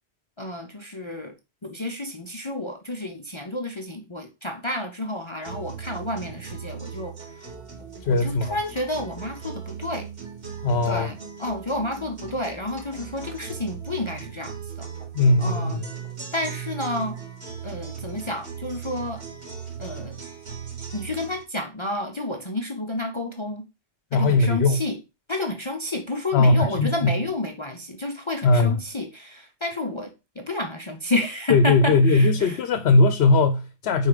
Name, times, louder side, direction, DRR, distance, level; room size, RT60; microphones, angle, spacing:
voice 1, 0.4-1.3 1.6-7.1 8.1-10.1 10.8-14.9 15.4-15.8 16.3-17.2 17.6-19.2 19.8-20.2 20.9-23.6 24.1-25.0 25.3-32.6, left 1 dB, 30° left, 0.7 m, -30 dB
sound 1, 5.4-21.4, right 7 dB, 80° right, 3.1 m, -38 dB
voice 2, 8.0-8.6 10.6-11.1 15.1-15.8 24.1-24.8 26.3-27.2 28.4-28.8 31.5-34.1, left 3 dB, 75° left, 0.9 m, -19 dB
5.1 x 4.3 x 4.9 m
omnidirectional pair, 1.1 m